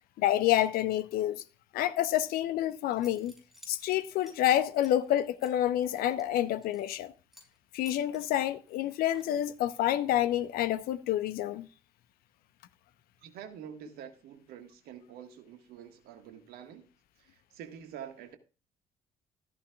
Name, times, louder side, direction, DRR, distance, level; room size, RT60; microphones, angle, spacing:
voice 1, 0.2-1.4 1.7-3.3 3.7-7.1 7.7-11.7, left 12 dB, 60° left, 0.9 m, -28 dB
Zipper (clothing) / Coin (dropping), 2.9-7.1 7.3-7.6 7.8-9.6, left 1 dB, ahead, 6.0 m, -56 dB
voice 2, 13.2-16.9 17.2-18.4, right 9 dB, 60° right, 1.7 m, -47 dB
14.0 x 13.0 x 2.4 m
figure-of-eight pair, 50°, 17 cm